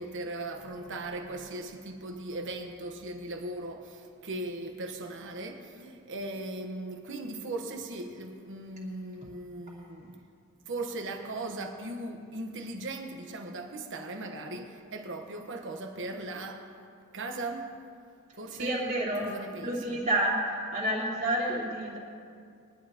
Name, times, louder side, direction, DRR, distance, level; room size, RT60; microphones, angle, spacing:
voice 1, 0.0-10.2 10.7-16.7 17.1-17.9 18.3-18.8 19.2-20.0, right 2 dB, 60° right, 4 dB, 1.3 m, -38 dB
voice 2, 18.6-19.3 19.6-20.4 20.7-22.0, right 1 dB, 35° right, -6 dB, 2.8 m, -29 dB
21.5 x 11.0 x 3.0 m, 2.4 s
head